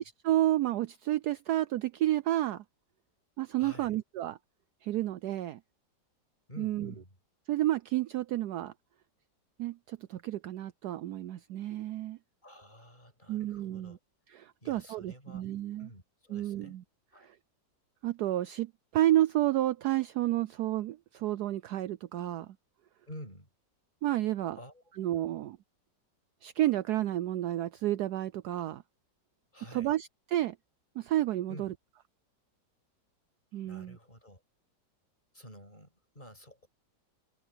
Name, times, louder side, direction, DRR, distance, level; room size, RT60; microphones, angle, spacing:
voice 1, 0.0-2.6 3.4-4.4 4.8-5.6 6.6-6.9 7.5-8.7 9.6-12.2 13.3-14.0 14.3-15.9 16.3-16.8 17.2-17.4 18.0-22.5 24.0-24.6 25.0-25.6 26.4-28.8 29.7-30.6 31.0-31.7 33.5-34.0, right 14 dB, 70° right, 1.1 m, -31 dB
voice 2, 3.6-4.0 6.5-7.2 12.4-14.0 14.6-15.5 15.8-16.8 17.1-17.3 23.1-23.5 24.5-24.8 25.2-25.4 29.5-29.9 31.5-31.7 33.6-34.4 35.3-36.7, equal, 25° left, 7.1 m, -50 dB
omnidirectional pair, 1.9 m